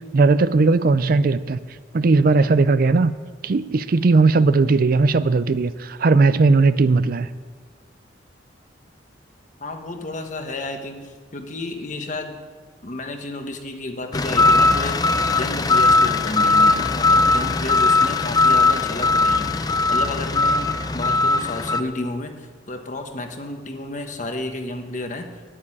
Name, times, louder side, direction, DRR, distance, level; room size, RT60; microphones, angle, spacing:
voice 1, 0.1-1.6 1.9-3.1 3.4-7.3, right 3 dB, 50° right, 14 dB, 0.4 m, -17 dB
voice 2, 9.6-12.4 12.8-20.7 20.9-25.3, left 2 dB, 40° left, 5 dB, 1.3 m, -31 dB
sound 1, 14.1-21.8, left 3 dB, 20° left, 0.5 m, -19 dB
9.8 x 8.8 x 9.9 m, 1.5 s
head